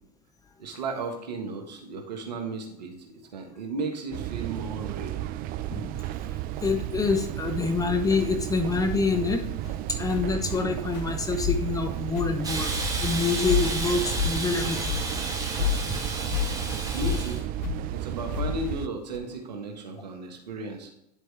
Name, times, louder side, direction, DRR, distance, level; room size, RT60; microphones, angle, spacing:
voice 1, 0.6-5.2 16.9-17.4 17.9-20.9, right 3 dB, 85° right, 2 dB, 1.6 m, -35 dB
sound 1, 4.1-18.9, right 13 dB, 45° right, 0.4 m, -33 dB
voice 2, 5.7-6.1 6.6-9.4 9.9-12.7 13.0-15.0, left 4 dB, 15° left, 6 dB, 0.8 m, -26 dB
sound 2, 9.6-9.7 10.1-10.6 10.9-11.1 11.4-11.8 12.1-12.5 12.7-13.1 13.5-13.9 14.1-14.5 14.8-15.1 15.3-15.4 15.6-16.5 17.0-17.3 17.6-17.8 18.3-18.8 19.1-19.2, left 10 dB, 85° left, 1.2 m, -29 dB
Hiss, 12.4-17.4, right 2 dB, 20° right, 2.3 m, -32 dB
11.0 x 4.7 x 3.4 m, 0.79 s
hypercardioid pair, 100°, 21 cm